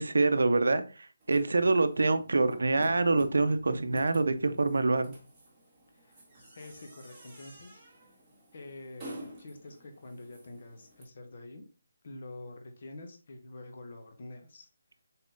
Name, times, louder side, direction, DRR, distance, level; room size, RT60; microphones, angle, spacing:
voice 1, 0.0-5.1, right 3 dB, 85° right, 10 dB, 0.5 m, -26 dB
sound 1, 1.2-11.0, right 1 dB, 10° right, 1.5 m, -50 dB
voice 2, 6.5-8.1 8.5-11.6 12.0-14.7, left 2 dB, 45° left, 5 dB, 0.7 m, -47 dB
4.1 x 3.6 x 2.5 m, 0.34 s
hypercardioid pair, 170°, 0 cm